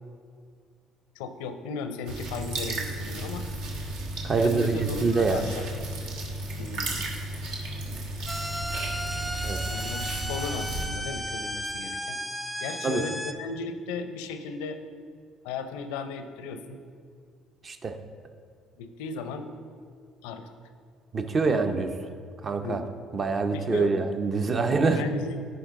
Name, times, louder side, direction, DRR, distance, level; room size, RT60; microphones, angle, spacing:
voice 1, 1.2-3.5 4.4-5.7 6.6-7.0 9.7-12.2 12.6-14.8 15.4-16.8 18.8-19.5 20.2-20.5 21.5-21.6 22.6-22.9 23.5-23.9 24.8-25.4, left 4 dB, 85° left, 9 dB, 0.5 m, -36 dB
sound 1, 2.1-10.8, right 2 dB, 80° right, 1.3 m, -34 dB
voice 2, 4.2-5.4 9.4-9.6 12.8-13.0 17.6-18.0 21.1-21.9 22.4-22.8 23.1-25.1, right 4 dB, 40° right, 7 dB, 0.7 m, -25 dB
sound 2, 8.3-13.3, equal, ahead, 0.6 m, -34 dB
10.5 x 4.7 x 3.7 m, 2.2 s
supercardioid pair, 70°, 0 cm